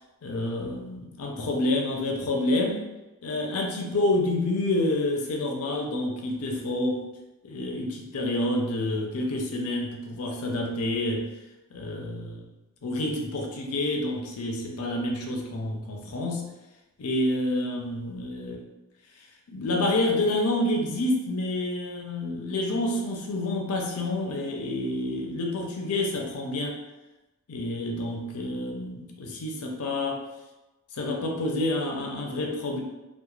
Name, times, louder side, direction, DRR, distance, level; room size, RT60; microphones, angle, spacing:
voice 1, 0.2-2.9 3.2-7.1 7.4-11.3 11.7-12.5 12.8-16.5 17.0-18.6 19.5-26.8 27.5-30.2 30.9-32.8, left 1 dB, 90° left, 1 dB, 0.5 m, -28 dB
2.3 x 2.1 x 3.0 m, 1.0 s
head